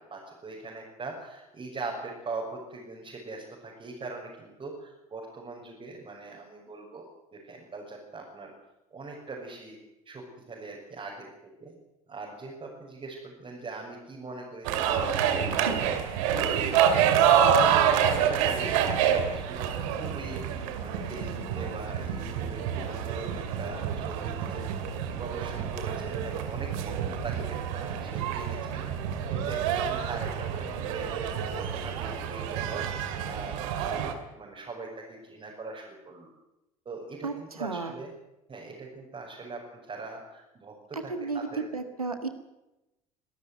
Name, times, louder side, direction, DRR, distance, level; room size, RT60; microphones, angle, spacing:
voice 1, 0.1-7.0 7.3-8.5 8.9-9.8 10.0-11.7 12.1-15.8 16.2-16.5 17.4-19.7 20.0-24.7 25.2-28.9 29.3-36.3 36.8-38.1 38.5-41.6, right 3 dB, 30° right, -3 dB, 6.6 m, -41 dB
sound 1, 14.6-34.1, right 8 dB, 65° right, 2.4 m, -27 dB
voice 2, 15.5-15.8 37.2-37.9 40.9-42.3, right 4 dB, 90° right, 8 dB, 1.7 m, -33 dB
24.5 x 13.5 x 9.6 m, 0.94 s
figure-of-eight pair, 60°, 18 cm